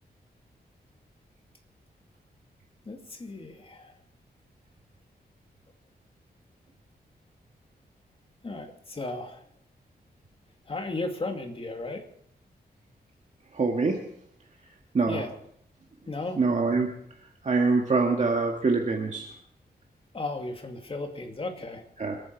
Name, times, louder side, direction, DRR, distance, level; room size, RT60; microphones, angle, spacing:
voice 1, 2.9-4.0 8.4-9.4 10.7-12.1 15.1-15.3 16.1-16.4 20.1-21.8, left 2 dB, 35° left, 4 dB, 2.5 m, -35 dB
voice 2, 13.5-14.0 14.9-15.2 16.4-16.9 17.4-19.3 22.0-22.2, right 4 dB, 45° right, 1 dB, 1.9 m, -24 dB
27.5 x 9.6 x 4.7 m, 0.69 s
wide cardioid pair, 100°, 17 cm